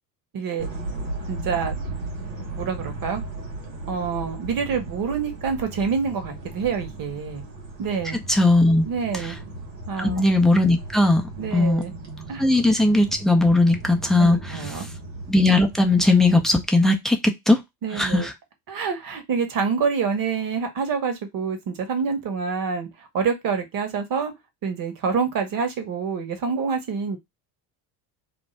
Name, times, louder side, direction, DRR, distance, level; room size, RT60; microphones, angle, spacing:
voice 1, 0.3-0.7 1.3-1.7 2.6-3.2 3.9-7.4 7.8-8.2 8.8-9.4 9.9-10.2 11.4-11.9 12.3-12.4 14.2-14.9 17.8-18.3 18.7-24.3 24.6-27.2, right 5 dB, 40° right, 6 dB, 1.1 m, -27 dB
sound 1, 0.6-16.7, right 2 dB, 90° right, 1.0 m, -36 dB
voice 2, 8.3-8.9 10.0-11.2 11.5-11.8 12.4-14.4 15.3-17.6 17.9-18.3, left 2 dB, ahead, 5 dB, 0.3 m, -18 dB
2.6 x 2.1 x 3.2 m, 0.18 s
hypercardioid pair, 65°, 50 cm